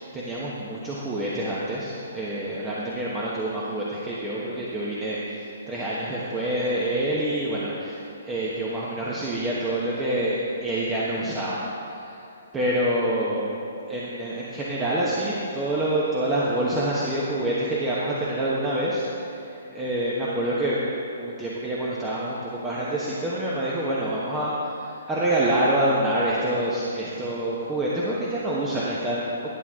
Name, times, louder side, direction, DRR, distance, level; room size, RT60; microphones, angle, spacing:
voice 1, 0.1-12.2 12.5-13.4 13.9-19.0 19.5-20.8 21.1-24.5 24.8-29.3, right 1 dB, 15° right, -7 dB, 1.1 m, -27 dB
11.0 x 7.2 x 3.6 m, 2.7 s
hypercardioid pair, 135°, 0 cm